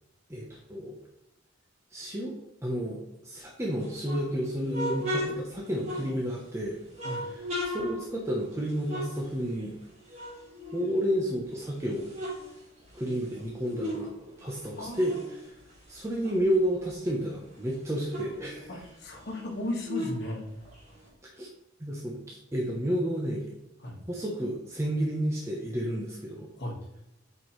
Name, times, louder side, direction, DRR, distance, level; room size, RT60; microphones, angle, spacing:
voice 1, 0.3-1.0 1.9-2.3 2.6-6.8 7.3-9.7 10.7-12.1 12.9-15.2 15.5-15.6 15.9-18.7 21.3-21.5 21.8-23.5 24.1-26.5, equal, 15° right, -2 dB, 0.8 m, -31 dB
sound 1, 3.8-6.5 6.9-9.8 10.1-11.4 11.8-14.1 14.4-16.9 17.3-17.4 17.6-21.1, equal, 35° right, 2.5 m, -37 dB
voice 2, 18.7-20.4 23.8-24.0 26.6-26.8, left 1 dB, 60° left, 0 dB, 1.6 m, -35 dB
7.9 x 4.6 x 3.1 m, 0.86 s
head